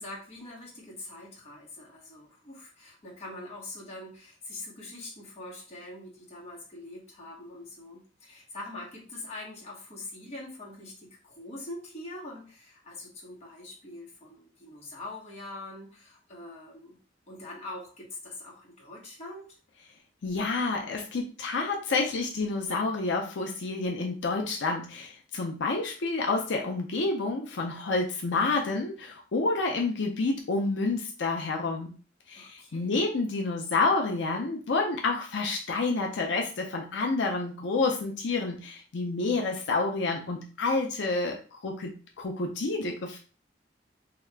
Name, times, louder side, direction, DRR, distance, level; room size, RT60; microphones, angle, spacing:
voice 1, 0.0-17.0 17.3-19.5 32.4-33.0, left 2 dB, 35° left, -3 dB, 1.1 m, -43 dB
voice 2, 20.2-31.9 32.3-43.2, left 3 dB, 85° left, 1 dB, 0.5 m, -29 dB
2.8 x 2.3 x 3.3 m, 0.38 s
head